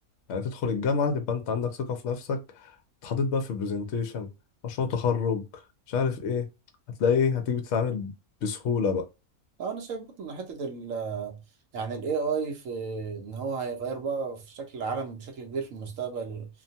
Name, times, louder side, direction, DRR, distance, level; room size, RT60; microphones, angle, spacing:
voice 1, 0.3-2.7 3.0-4.3 4.6-5.4 5.9-6.4 7.0-8.1 8.4-9.0, left 5 dB, 60° left, 0.8 m, -27 dB
voice 2, 9.6-11.4 11.7-16.5, right 5 dB, 65° right, 1.1 m, -33 dB
2.9 x 2.2 x 2.6 m
omnidirectional pair, 1.5 m